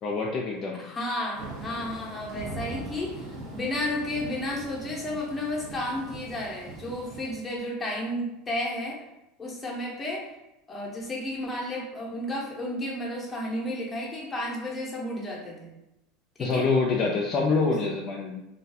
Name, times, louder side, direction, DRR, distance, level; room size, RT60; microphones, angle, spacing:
voice 1, 0.0-0.9 16.4-18.5, left 4 dB, 40° left, -2 dB, 0.4 m, -26 dB
voice 2, 0.8-9.0 9.4-10.3 10.7-15.7 16.4-16.7, left 1 dB, 15° left, -3 dB, 0.7 m, -32 dB
Thunder / Rain, 1.3-7.3, right 2 dB, 55° right, 0.7 m, -41 dB
2.3 x 2.2 x 2.7 m, 0.88 s
supercardioid pair, 110°, 0 cm